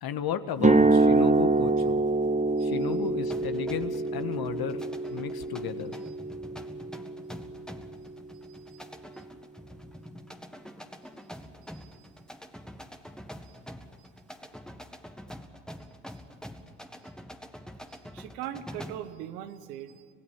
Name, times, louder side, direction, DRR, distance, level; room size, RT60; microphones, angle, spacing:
voice 1, 0.0-2.0 2.6-4.8 5.1-5.9, left 9 dB, 55° left, 11 dB, 1.5 m, -34 dB
sound 1, 0.6-8.6, right 3 dB, 15° right, 1.2 m, -26 dB
voice 2, 2.6-2.9 8.5-8.8 11.7-12.1 13.4-13.6 14.0-14.1 17.9-20.0, right 11 dB, 90° right, 10 dB, 1.3 m, -42 dB
sound 2, 3.3-19.1, equal, ahead, 1.7 m, -46 dB
26.5 x 17.0 x 7.3 m, 2.1 s
hypercardioid pair, 65°, 45 cm